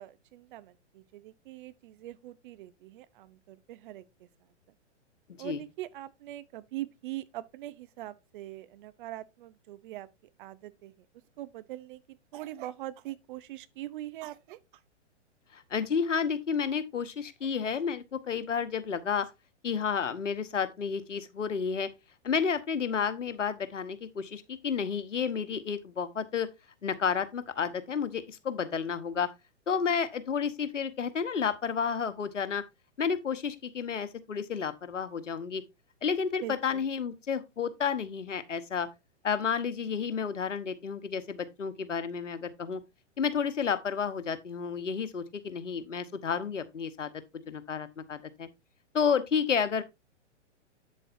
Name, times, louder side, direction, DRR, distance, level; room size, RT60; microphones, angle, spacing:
voice 1, 0.0-4.3 5.4-10.1 10.4-11.1 11.4-14.6 36.4-36.9, right 15 dB, 45° right, 0.8 m, -42 dB
voice 2, 15.5-19.3 19.6-21.9 22.2-26.5 26.8-29.3 29.7-32.6 33.0-35.6 36.0-38.9 39.2-42.8 43.2-47.1 47.5-48.5 48.9-49.8, left 6 dB, 85° left, 1.2 m, -31 dB
8.5 x 7.7 x 2.6 m
hypercardioid pair, 120°, 36 cm